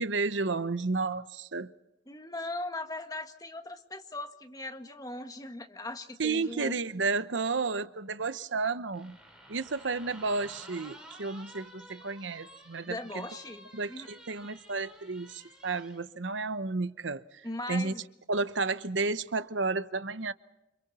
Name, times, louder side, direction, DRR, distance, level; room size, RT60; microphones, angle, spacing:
voice 1, 0.0-1.7 6.2-9.2 9.5-13.3 13.7-17.9 18.3-20.3, right 3 dB, 85° right, 1.0 m, -32 dB
voice 2, 2.1-6.8 12.9-14.1 17.4-18.1, left 2 dB, 20° left, 1.8 m, -39 dB
sound 1, 8.9-16.0, right 1 dB, 5° right, 5.6 m, -52 dB
29.5 x 27.0 x 4.3 m
head